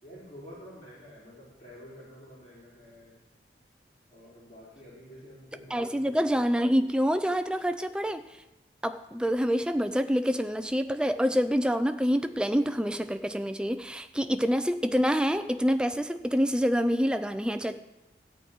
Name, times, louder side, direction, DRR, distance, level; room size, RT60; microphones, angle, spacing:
voice 1, 0.0-3.2 4.1-6.3, equal, 25° left, -10 dB, 4.1 m, -49 dB
voice 2, 5.7-8.3 8.8-17.8, equal, 5° right, 10 dB, 0.4 m, -26 dB
14.0 x 4.7 x 8.9 m, 1.0 s
head